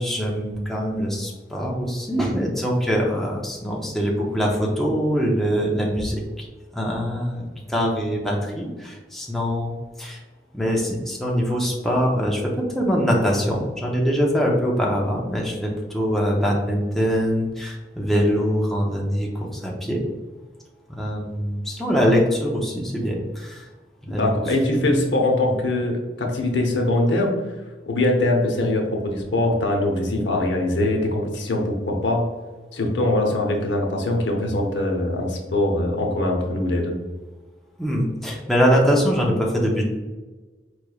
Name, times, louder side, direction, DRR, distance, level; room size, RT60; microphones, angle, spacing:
voice 1, 0.0-10.2 10.5-20.0 20.9-23.7 24.0-25.1 37.8-39.8, equal, ahead, -2 dB, 0.5 m, -23 dB
voice 2, 24.1-27.3 27.9-32.3 32.7-36.9, left 1 dB, 75° left, 1 dB, 0.7 m, -22 dB
4.8 x 3.1 x 2.3 m, 1.3 s
head